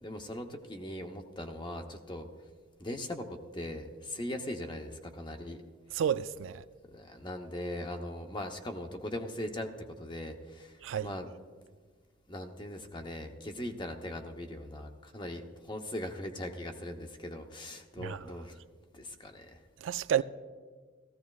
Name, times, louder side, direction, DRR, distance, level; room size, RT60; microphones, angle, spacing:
voice 1, 0.0-2.3 2.8-5.6 6.9-11.3 12.3-18.6 18.9-19.6, left 1 dB, 25° left, 0.8 m, -40 dB
voice 2, 5.9-6.6 10.8-11.1 18.0-18.3 19.8-20.2, right 9 dB, 80° right, 0.4 m, -31 dB
16.5 x 15.0 x 2.4 m
head